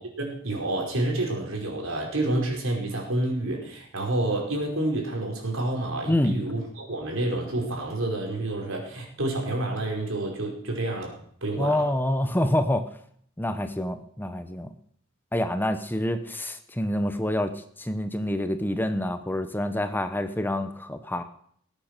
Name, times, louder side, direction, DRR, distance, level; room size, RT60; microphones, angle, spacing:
voice 1, 0.2-11.9, right 1 dB, 75° right, 0 dB, 4.9 m, -29 dB
voice 2, 11.6-12.9 13.4-14.7 15.3-17.5 17.8-21.2, left 1 dB, 10° left, 9 dB, 0.9 m, -27 dB
19.0 x 9.0 x 6.7 m, 0.64 s
head